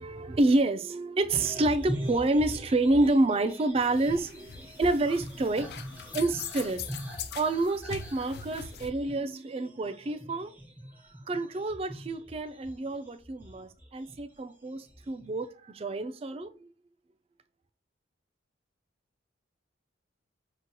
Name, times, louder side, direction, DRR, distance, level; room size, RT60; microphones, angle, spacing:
voice 1, 0.0-4.5 4.8-5.7 6.1-6.9 7.3-10.5 11.3-16.7, right 2 dB, 30° right, 0.3 m, -28 dB
sound 1, 1.3-14.4 14.7-15.4, equal, 10° right, 1.2 m, -42 dB
sound 2, 3.8-8.9, left 7 dB, 55° left, 0.4 m, -42 dB
6.0 x 2.8 x 2.2 m
head